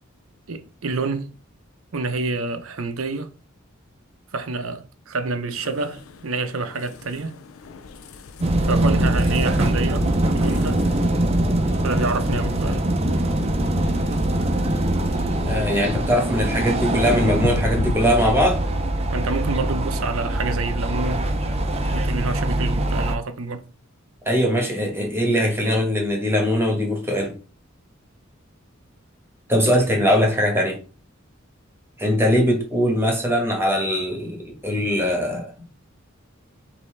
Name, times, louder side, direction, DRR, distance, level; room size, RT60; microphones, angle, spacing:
voice 1, 0.5-1.3 1.9-3.3 4.3-7.3 8.6-10.8 11.8-12.9 19.1-21.3 21.9-23.7, right 3 dB, 85° right, 0.6 m, -28 dB
sound 1, 5.5-17.9, left 4 dB, 80° left, 0.5 m, -36 dB
sound 2, 8.4-23.1, right 1 dB, 30° right, 0.5 m, -23 dB
voice 2, 15.4-18.6 24.3-27.3 29.5-30.8 32.0-35.5, equal, 10° right, 1.2 m, -21 dB
5.3 x 2.7 x 3.3 m
head